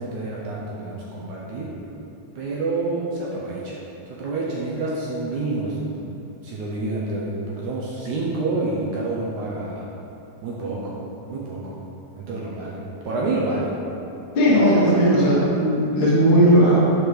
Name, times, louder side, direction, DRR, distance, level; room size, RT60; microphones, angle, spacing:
voice 1, 0.0-1.7 2.3-3.8 4.1-6.1 6.4-9.9 10.4-11.0 11.3-11.7 12.2-13.7, right 2 dB, 75° right, -5 dB, 1.8 m, -28 dB
voice 2, 14.3-16.8, equal, 80° left, -8 dB, 1.0 m, -16 dB
5.7 x 5.0 x 4.7 m, 2.9 s
omnidirectional pair, 4.2 m